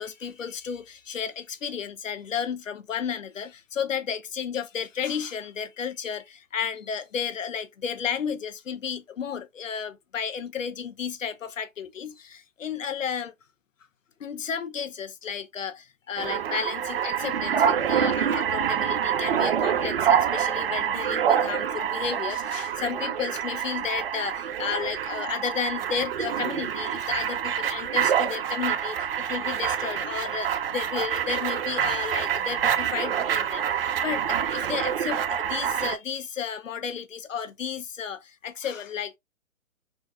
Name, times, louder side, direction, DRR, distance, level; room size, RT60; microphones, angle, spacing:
voice 1, 0.0-13.3 14.2-33.8 34.0-39.2, left 7 dB, 65° left, 0.9 m, -33 dB
sound 1, 16.2-36.0, right 8 dB, 45° right, 0.6 m, -26 dB
4.8 x 3.6 x 2.7 m
figure-of-eight pair, 125°, 42 cm